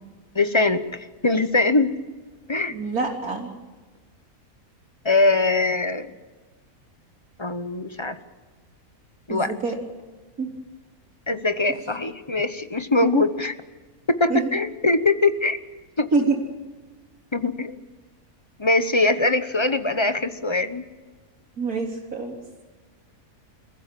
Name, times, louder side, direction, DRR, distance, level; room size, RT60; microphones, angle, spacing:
voice 1, 0.3-1.9 2.5-2.7 5.0-6.1 7.4-8.2 9.3-9.5 11.3-13.5 14.1-15.6 16.0-16.1 17.3-17.8 18.6-20.8, left 2 dB, 20° left, 10 dB, 0.9 m, -22 dB
voice 2, 2.7-3.5 9.3-9.8 10.4-10.5 13.1-13.2 14.3-14.5 16.1-16.4 21.6-22.3, right 4 dB, 90° right, -6 dB, 4.0 m, -25 dB
29.0 x 15.0 x 7.6 m, 1.3 s
omnidirectional pair, 1.5 m